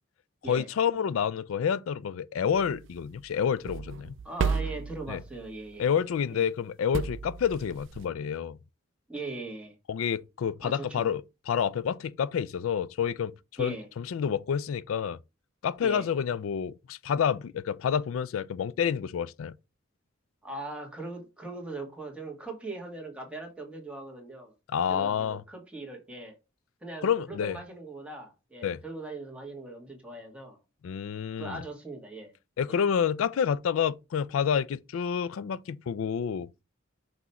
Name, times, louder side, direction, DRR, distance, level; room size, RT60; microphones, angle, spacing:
voice 1, 0.5-4.1 5.1-5.2 5.8-8.6 9.9-15.2 15.6-19.5 24.7-25.4 27.0-27.6 28.6-28.8 30.8-31.6 32.6-36.5, left 7 dB, 90° left, 0.4 m, -29 dB
sound 1, 2.5-5.7 6.9-8.1, right 5 dB, 65° right, 0.4 m, -34 dB
voice 2, 4.2-5.9 6.3-6.4 9.1-9.8 10.6-11.1 13.6-13.9 15.8-16.1 20.4-24.5 24.9-26.3 26.8-30.6 31.4-32.3 32.7-32.8, right 2 dB, 5° right, 1.7 m, -40 dB
6.2 x 3.0 x 5.5 m
head